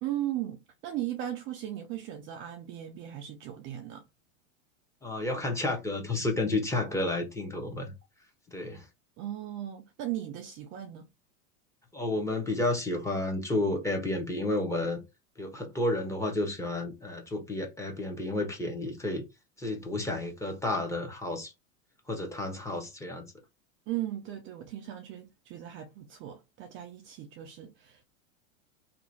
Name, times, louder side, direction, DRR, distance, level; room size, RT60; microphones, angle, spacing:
voice 1, 0.0-4.0 9.2-11.1 23.9-28.0, right 12 dB, 30° right, 0.4 m, -37 dB
voice 2, 5.0-7.9 8.5-8.8 11.9-15.0 15.4-19.2 19.6-21.5 22.1-23.3, left 2 dB, 10° left, 0.9 m, -31 dB
2.9 x 2.4 x 4.0 m
supercardioid pair, 130°, 39 cm